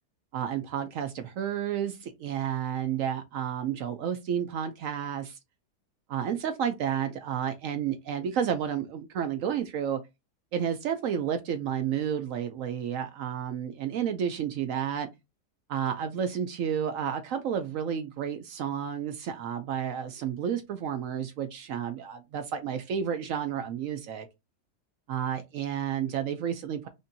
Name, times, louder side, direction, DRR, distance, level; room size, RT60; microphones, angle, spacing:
voice 1, 0.3-5.4 6.1-10.0 10.5-15.1 15.7-24.3 25.1-26.9, right 8 dB, 70° right, 0.8 m, -31 dB
5.1 x 2.6 x 2.7 m
omnidirectional pair, 1.7 m